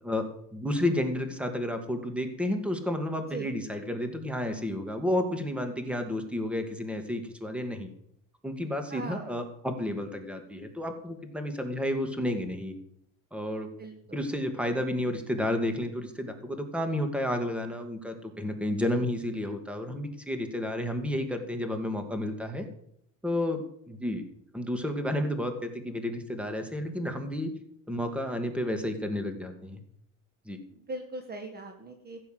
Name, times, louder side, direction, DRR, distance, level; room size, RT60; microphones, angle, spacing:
voice 1, 0.0-7.9 8.4-12.7 13.3-13.7 14.1-22.7 23.2-24.2 24.5-27.5 27.9-29.8 30.5-30.6, left 1 dB, 5° right, 6 dB, 2.1 m, -31 dB
voice 2, 8.9-9.4 13.8-14.0 30.7-32.2, right 2 dB, 25° right, 5 dB, 1.5 m, -39 dB
15.5 x 7.3 x 7.7 m, 0.69 s
cardioid pair, 130°, 41 cm